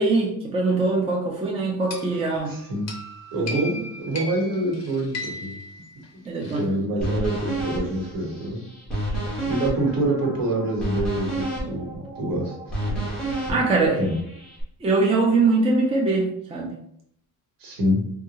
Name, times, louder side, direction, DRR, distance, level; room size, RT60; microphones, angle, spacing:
voice 1, 0.0-2.5 3.5-3.7 6.3-6.7 13.5-14.0 14.8-16.7, right 3 dB, 15° right, -1 dB, 0.4 m, -22 dB
sound 1, 1.9-6.6, left 2 dB, 45° left, 0.6 m, -37 dB
voice 2, 2.4-2.9 3.3-5.5 6.4-8.6 9.4-12.8 13.4-13.6 14.0-14.2 17.6-18.0, right 1 dB, 70° right, -1 dB, 1.2 m, -26 dB
sound 2, 7.0-14.6, right 1 dB, ahead, 1.0 m, -30 dB
3.6 x 2.3 x 2.9 m, 0.70 s
cardioid pair, 170°, 35 cm